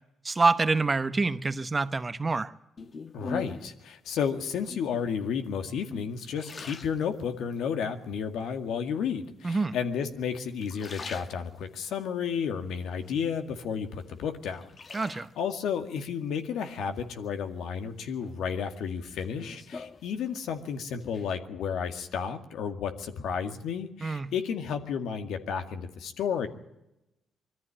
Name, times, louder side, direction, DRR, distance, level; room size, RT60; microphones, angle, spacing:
voice 1, 0.2-2.5 9.4-9.7 14.9-15.3 24.0-24.3, right 3 dB, 25° right, 0.9 m, -26 dB
sound 1, 2.8-3.8 4.6-5.1 5.6-7.6 8.1-8.7 9.5-10.2 10.5-11.9 12.3-13.6 14.0-15.6 17.0-17.6 18.0-20.6 20.9-21.4, left 3 dB, 40° left, 1.1 m, -44 dB
voice 2, 3.1-26.5, left 7 dB, 80° left, 2.0 m, -32 dB
22.5 x 14.0 x 10.0 m
cardioid pair, 90°, 0 cm